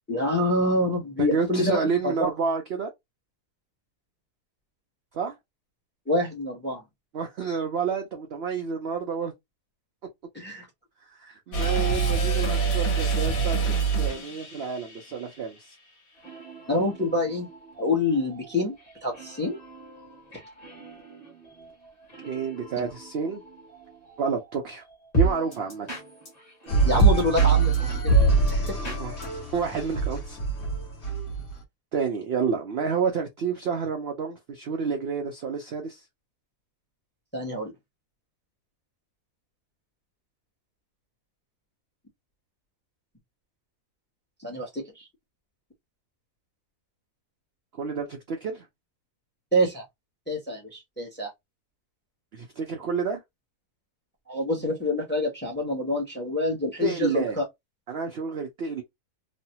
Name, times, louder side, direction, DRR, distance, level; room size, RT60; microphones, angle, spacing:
voice 1, 0.1-2.3 6.1-6.8 10.3-10.7 16.7-17.5 17.8-18.7 19.0-19.6 26.8-28.0 28.5-28.8 37.3-37.7 44.4-45.1 49.5-49.8 50.3-51.3 54.3-57.4, left 1 dB, 10° left, 0.6 m, -26 dB
voice 2, 1.2-2.9 5.1-5.3 7.1-9.3 11.2-15.7 22.3-23.4 24.2-24.8 25.2-25.9 28.8-29.1 29.5-30.4 31.9-36.0 47.7-48.6 52.3-53.2 56.8-57.4 57.9-58.8, right 5 dB, 75° right, 0.5 m, -29 dB
sound 1, 11.5-15.3, right 5 dB, 65° left, 1.4 m, -26 dB
sound 2, 16.1-29.9, right 3 dB, 30° left, 1.3 m, -32 dB
sound 3, 26.7-31.5, right 3 dB, 45° left, 1.4 m, -24 dB
3.1 x 2.1 x 2.7 m
omnidirectional pair, 1.7 m